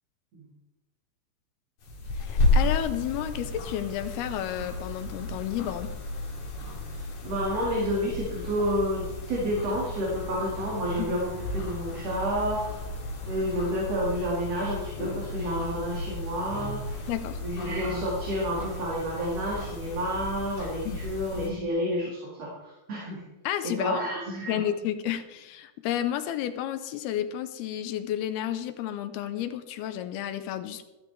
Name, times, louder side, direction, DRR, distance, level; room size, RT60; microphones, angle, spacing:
sound 1, 1.8-21.5, left 2 dB, 45° left, 3.0 m, -33 dB
voice 1, 2.2-5.9 11.0-11.1 17.1-17.4 20.9-21.0 23.4-24.0 24.5-30.8, left 11 dB, 85° left, 10 dB, 2.7 m, -31 dB
voice 2, 6.9-12.7 13.2-17.1 17.4-23.2 23.6-24.6, equal, 45° right, -4 dB, 3.0 m, -30 dB
13.0 x 12.5 x 3.4 m, 1.0 s
omnidirectional pair, 4.5 m